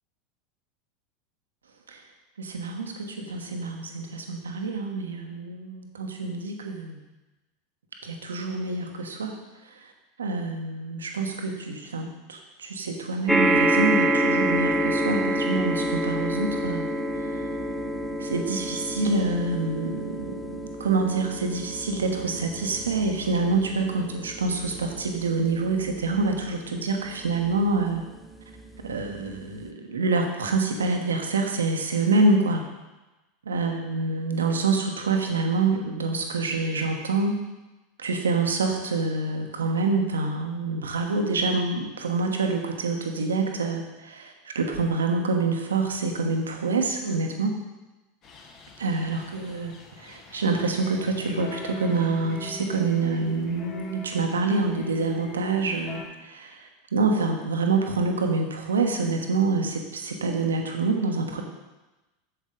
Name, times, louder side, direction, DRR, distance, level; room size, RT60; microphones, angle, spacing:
voice 1, 2.4-7.0 8.0-9.9 10.2-16.9 17.1-17.4 18.2-28.0 28.8-32.6 33.5-37.4 38.0-47.6 48.8-49.7 50.0-61.4, right 3 dB, 80° right, 3 dB, 1.1 m, -26 dB
sound 1, 13.3-27.8 28.6-28.7 28.9-29.0, right 1 dB, 5° right, 0.7 m, -28 dB
sound 2, 48.2-56.1, left 2 dB, 40° left, 1.5 m, -42 dB
7.7 x 7.3 x 3.9 m, 1.1 s
figure-of-eight pair, 85°, 0 cm